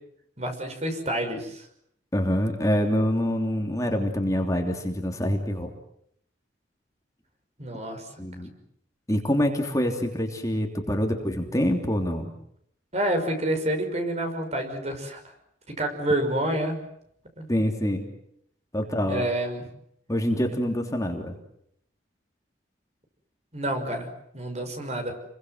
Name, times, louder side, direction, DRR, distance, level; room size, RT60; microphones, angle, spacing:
voice 1, 0.4-1.7 7.6-8.1 12.9-15.2 15.7-16.8 17.4-17.5 19.1-19.7 23.5-24.1 24.3-25.2, right 1 dB, 35° right, 6 dB, 5.7 m, -28 dB
voice 2, 2.1-5.7 8.2-8.5 9.1-12.3 17.5-18.0 18.7-19.2 20.1-21.3, equal, 20° left, 3 dB, 3.2 m, -25 dB
29.5 x 23.0 x 8.0 m, 0.71 s
head